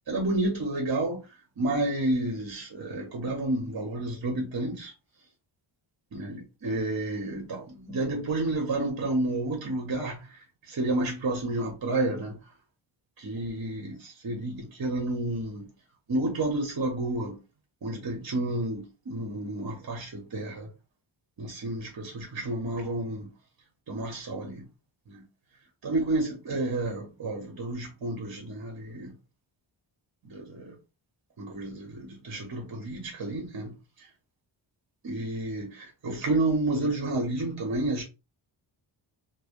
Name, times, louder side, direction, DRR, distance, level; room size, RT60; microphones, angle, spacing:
voice 1, 0.1-1.2 1.6-4.9 6.1-10.2 10.7-12.4 13.2-15.7 16.1-17.4 17.8-20.7 21.4-23.3 23.9-24.7 25.1-25.2 25.8-29.1 30.2-30.7 31.4-33.7 35.0-38.0, right 2 dB, 45° right, 1.0 m, -30 dB
3.3 x 2.0 x 2.5 m
cardioid pair, 85°, 49 cm